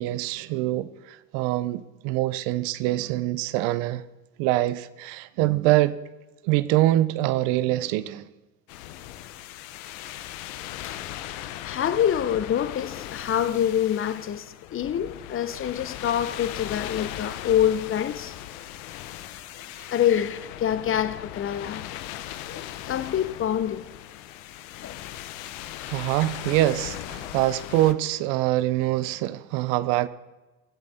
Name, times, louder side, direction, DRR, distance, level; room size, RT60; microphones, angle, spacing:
voice 1, 0.0-4.0 4.4-6.0 6.4-8.2 25.9-30.1, right 16 dB, 60° right, 0.9 m, -24 dB
sound 1, 8.7-27.9, left 13 dB, 65° left, 1.1 m, -38 dB
voice 2, 11.6-14.4 14.7-18.3 19.9-21.9 22.5-23.8 24.8-25.0 25.8-25.9, left 10 dB, 30° left, 0.9 m, -26 dB
22.5 x 7.7 x 4.3 m
hypercardioid pair, 95°, 42 cm